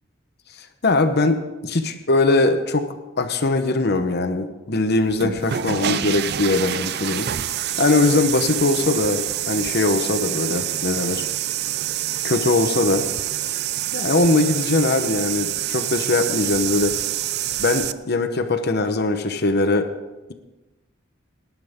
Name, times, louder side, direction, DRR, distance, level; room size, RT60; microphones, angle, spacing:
voice 1, 0.6-7.3 7.8-11.3 12.2-13.0 13.9-16.9 17.6-19.9, left 2 dB, 55° left, 8 dB, 1.0 m, -21 dB
sound 1, 5.0-17.9, right 12 dB, 55° right, 0.4 m, -26 dB
19.0 x 12.0 x 3.7 m, 1.1 s
head